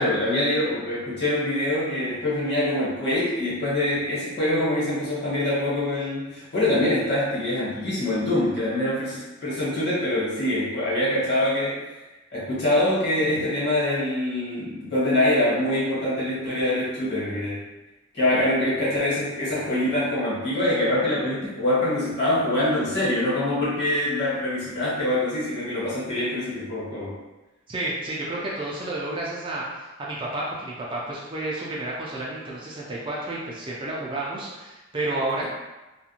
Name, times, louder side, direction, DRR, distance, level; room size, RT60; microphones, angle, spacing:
voice 1, 0.0-11.9 12.3-17.6 18.1-27.1, left 1 dB, 55° left, -9 dB, 1.2 m, -24 dB
voice 2, 27.7-35.4, right 2 dB, 25° right, -5 dB, 0.4 m, -31 dB
2.4 x 2.1 x 2.9 m, 1.1 s
head